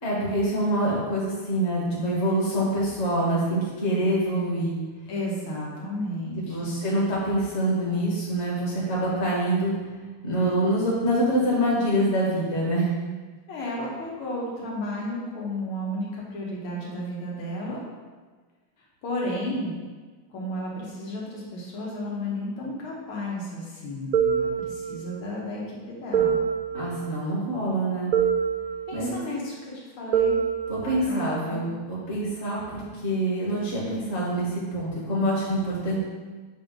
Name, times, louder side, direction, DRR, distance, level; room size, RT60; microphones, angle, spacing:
voice 1, 0.0-4.8 6.3-9.7 10.2-12.9 26.7-28.1 28.9-29.1 30.7-36.0, right 1 dB, 35° left, -6 dB, 1.7 m, -25 dB
voice 2, 5.1-6.7 13.5-17.8 19.0-19.8 20.3-26.4 28.9-30.4 30.8-31.6, left 1 dB, 85° left, -4 dB, 2.1 m, -33 dB
sound 1, 24.1-25.3 26.1-27.3 28.1-29.3 30.1-31.3, right 7 dB, 75° right, 0.8 m, -26 dB
7.6 x 2.7 x 5.1 m, 1.4 s
omnidirectional pair, 2.3 m